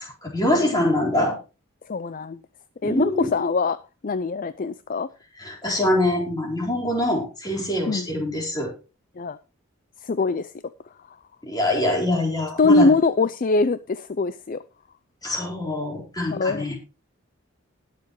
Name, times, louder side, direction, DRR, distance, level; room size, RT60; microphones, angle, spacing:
voice 1, 0.0-1.4 2.8-3.3 5.4-8.7 11.4-13.0 15.2-16.8, left 1 dB, 20° left, -2 dB, 4.4 m, -24 dB
voice 2, 1.9-2.4 2.8-3.8 4.0-5.1 7.9-8.1 9.2-9.4 10.0-10.5 12.6-14.6 16.3-16.7, left 3 dB, 40° left, 14 dB, 0.4 m, -22 dB
20.0 x 6.8 x 3.1 m, 0.31 s
head